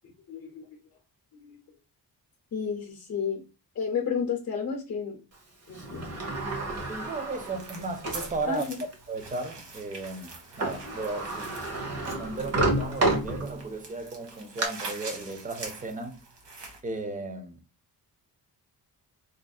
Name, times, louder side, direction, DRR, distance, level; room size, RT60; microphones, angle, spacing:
voice 1, 0.3-0.7 1.3-1.6 2.5-3.4 3.7-5.2 5.7-6.3 8.5-8.8, left 6 dB, 40° left, 0.6 m, -32 dB
Sliding door, 5.7-8.3 8.9-9.0 10.3-10.4 10.6-13.8 14.2-14.7, right 2 dB, 40° right, 0.9 m, -30 dB
voice 2, 6.9-8.7 9.1-11.6 12.1-16.2 16.8-17.6, right 3 dB, 20° right, 0.5 m, -35 dB
sound 1, 7.4-16.8, right 3 dB, 75° right, 1.2 m, -44 dB
4.3 x 2.5 x 2.3 m
wide cardioid pair, 180°, 41 cm